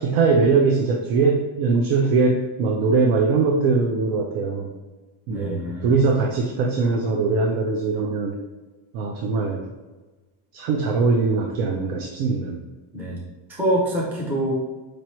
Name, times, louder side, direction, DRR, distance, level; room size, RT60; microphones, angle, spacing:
voice 1, 0.0-4.7 5.3-8.4 8.9-9.6 10.5-12.6, right 4 dB, 90° right, 1 dB, 0.7 m, -21 dB
voice 2, 5.3-5.9 12.9-13.2 13.5-14.5, right 1 dB, 5° right, -4 dB, 0.3 m, -25 dB
5.0 x 3.1 x 3.0 m, 1.2 s
cardioid pair, 170°, 50 cm